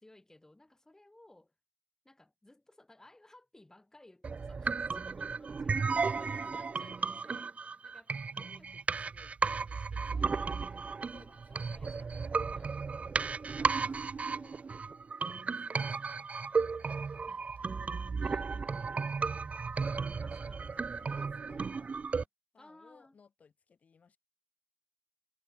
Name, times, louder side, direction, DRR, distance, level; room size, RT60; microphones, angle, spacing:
voice 1, 0.0-1.5 2.0-10.9 11.5-13.2 17.3-17.4 18.2-19.5 20.2-20.7 22.6-23.2, left 1 dB, 20° left, 5.2 m, -60 dB
sound 1, 4.2-22.2, right 5 dB, 65° right, 0.9 m, -34 dB
voice 2, 5.9-6.6 11.1-12.2 13.1-14.7 15.3-16.2 16.5-17.7 18.0-18.2 20.2-22.2 22.5-24.2, left 5 dB, 90° left, 7.5 m, -62 dB
wide cardioid pair, 75°, 2 cm